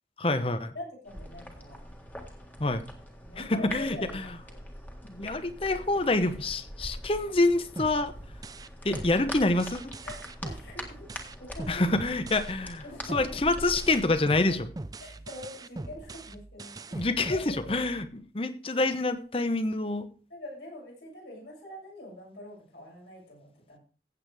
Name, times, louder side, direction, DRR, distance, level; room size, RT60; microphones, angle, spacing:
voice 1, 0.2-0.7 2.6-2.9 3.4-4.3 5.1-8.1 8.8-9.9 11.7-12.8 13.1-14.7 16.9-20.1, left 2 dB, 30° left, 11 dB, 0.9 m, -27 dB
voice 2, 0.7-1.9 3.2-4.6 6.2-6.3 8.8-9.0 10.0-11.1 11.4-11.9 12.8-13.5 15.0-17.8 20.3-23.8, left 1 dB, 75° left, -2 dB, 6.8 m, -44 dB
sound 1, 1.1-14.2, equal, 10° left, 1.6 m, -43 dB
sound 2, 7.8-12.8 13.1-18.1, right 2 dB, 20° right, 0.5 m, -42 dB
15.5 x 8.1 x 3.4 m, 0.40 s
head